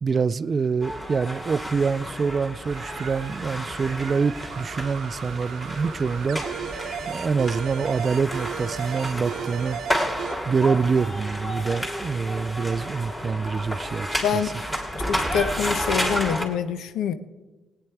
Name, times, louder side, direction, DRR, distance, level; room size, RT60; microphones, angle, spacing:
voice 1, 0.0-6.4 7.1-9.8 10.5-14.2, right 5 dB, 40° right, 0.3 m, -25 dB
sound 1, 0.8-16.4, equal, 10° left, 2.6 m, -31 dB
sound 2, 2.7-10.4, right 8 dB, 80° right, 0.8 m, -36 dB
voice 2, 14.2-14.5 15.1-17.1, left 7 dB, 80° left, 0.8 m, -25 dB
17.5 x 9.1 x 4.6 m
cardioid pair, 90°, 0 cm